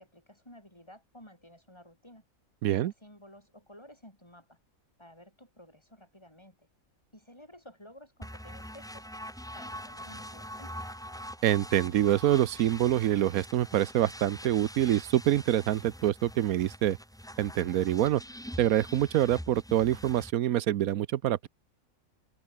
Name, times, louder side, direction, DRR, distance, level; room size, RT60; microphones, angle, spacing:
voice 1, 0.0-2.2 2.7-4.6 5.0-6.7 7.1-9.1 9.5-10.7, left 1 dB, 20° left, 7.8 m, -53 dB
voice 2, 2.6-2.9 11.4-17.0 17.4-18.2 18.6-21.5, right 12 dB, 90° right, 1.2 m, -26 dB
sound 1, 8.2-20.3, equal, ahead, 2.0 m, -44 dB
open air
omnidirectional pair, 1.5 m